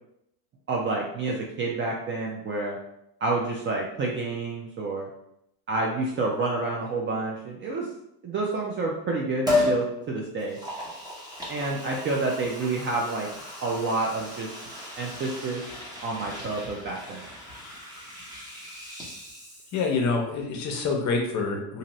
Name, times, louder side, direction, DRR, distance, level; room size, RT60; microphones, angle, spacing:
voice 1, 0.7-2.8 3.2-5.1 5.7-7.9 8.2-10.6 11.5-13.3 13.6-14.6 15.0-15.6 16.0-17.3, right 3 dB, 30° right, -1 dB, 0.4 m, -29 dB
Liquid, 9.5-9.8 10.4-20.0 20.3-20.4, left 2 dB, 10° right, 1.0 m, -33 dB
voice 2, 19.7-21.8, left 4 dB, 40° left, 2 dB, 0.7 m, -26 dB
2.6 x 2.6 x 3.0 m, 0.79 s
supercardioid pair, 110°, 45 cm